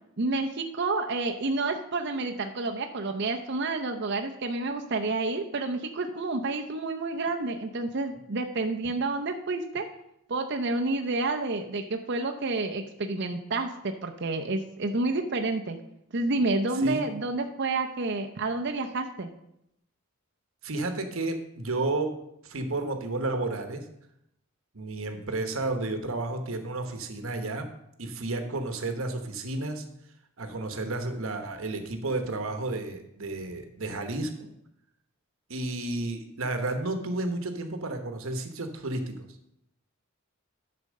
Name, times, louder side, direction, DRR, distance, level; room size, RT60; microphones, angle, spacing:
voice 1, 0.2-9.9 10.3-15.8 16.1-19.3, right 3 dB, 50° right, 4 dB, 0.6 m, -29 dB
voice 2, 20.6-22.2 22.4-23.8 24.7-27.7 28.0-29.8 30.4-34.5 35.5-39.2, right 2 dB, 70° right, 7 dB, 1.1 m, -32 dB
10.0 x 4.4 x 6.3 m, 0.78 s
head